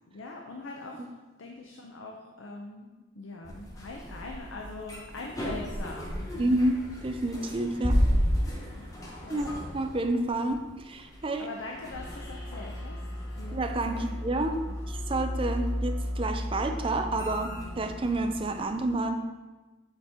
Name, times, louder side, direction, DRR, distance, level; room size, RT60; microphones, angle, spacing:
voice 1, 0.1-1.0 1.4-2.9 3.2-6.5 7.8-8.3 8.7-8.9 9.2-9.6 11.4-13.0 13.3-14.2 14.7-14.8, left 3 dB, 85° left, 1 dB, 0.6 m, -42 dB
sound 1, 3.4-18.9, equal, 20° left, 1.0 m, -33 dB
voice 2, 6.4-6.7 7.0-8.0 9.3-11.5 13.5-14.6 14.9-19.2, right 2 dB, 30° right, 6 dB, 0.4 m, -29 dB
8.0 x 4.4 x 3.5 m, 1.2 s
head